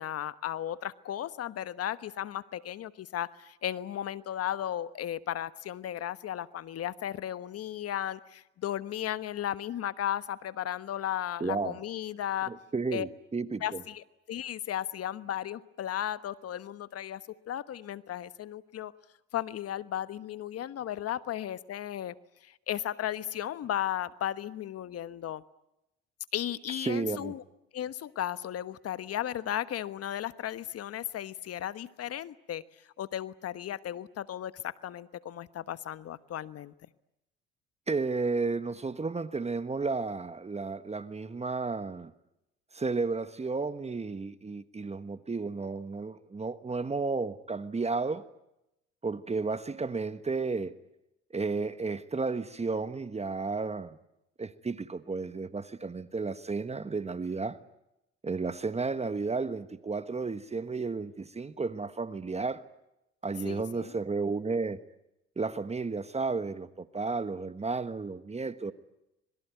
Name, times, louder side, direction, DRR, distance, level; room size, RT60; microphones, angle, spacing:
voice 1, 0.0-12.5 12.9-13.1 13.6-17.2 17.5-18.9 19.3-22.1 22.4-25.4 26.3-27.4 27.7-32.6 33.0-36.7 63.4-63.9, left 11 dB, 55° left, 1.2 m, -35 dB
voice 2, 11.4-11.8 12.5-13.8 26.8-27.3 37.9-42.1 42.7-48.2 49.0-50.7 51.3-54.0 54.4-57.6 58.2-62.6 63.2-64.8 65.4-68.7, right 4 dB, 20° right, 1.3 m, -33 dB
26.5 x 22.0 x 9.3 m
supercardioid pair, 70°, 30 cm